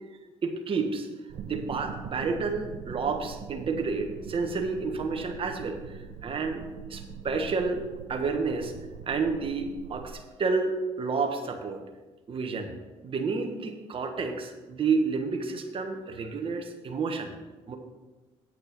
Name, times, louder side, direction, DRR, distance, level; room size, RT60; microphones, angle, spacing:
voice 1, 0.4-1.1 1.4-8.7 9.1-11.8 12.3-12.7 13.0-17.3 17.7-17.8, right 4 dB, 45° right, 4 dB, 1.3 m, -30 dB
sound 1, 1.3-10.1, right 6 dB, 65° right, 0.7 m, -42 dB
8.8 x 6.6 x 6.0 m, 1.2 s
supercardioid pair, 75°, 12 cm